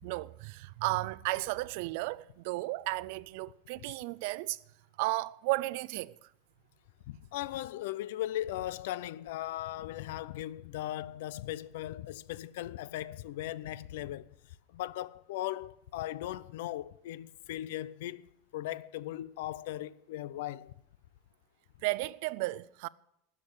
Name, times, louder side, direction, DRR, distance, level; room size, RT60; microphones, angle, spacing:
voice 1, 0.0-4.6 5.0-6.1 21.8-22.9, right 20 dB, 60° right, 0.4 m, -34 dB
voice 2, 7.1-14.3 14.7-20.7, left 14 dB, 75° left, 0.5 m, -38 dB
13.0 x 7.7 x 8.0 m
supercardioid pair, 160°, 0 cm